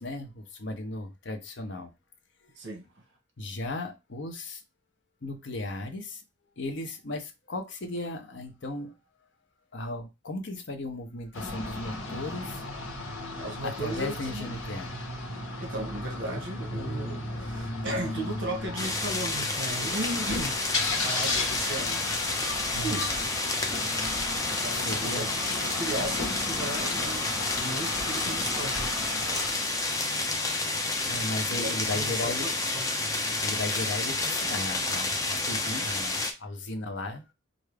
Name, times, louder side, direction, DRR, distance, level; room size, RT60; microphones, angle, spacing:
voice 1, 0.0-1.9 2.4-2.6 3.4-4.6 5.2-6.2 6.6-9.0 9.7-12.6 13.6-15.0 22.7-23.0 24.7-25.3 31.0-32.5 33.4-37.2, left 2 dB, 60° left, 0.7 m, -36 dB
voice 2, 2.6-2.9 13.4-14.5 15.6-20.6 21.0-22.1 22.8-23.1 23.5-23.7 24.5-28.8 31.5-32.8, right 1 dB, 55° right, 1.1 m, -36 dB
sound 1, 11.3-29.5, left 2 dB, 80° left, 1.2 m, -35 dB
sound 2, 18.8-36.3, left 2 dB, 15° left, 0.5 m, -30 dB
4.7 x 2.6 x 3.3 m
head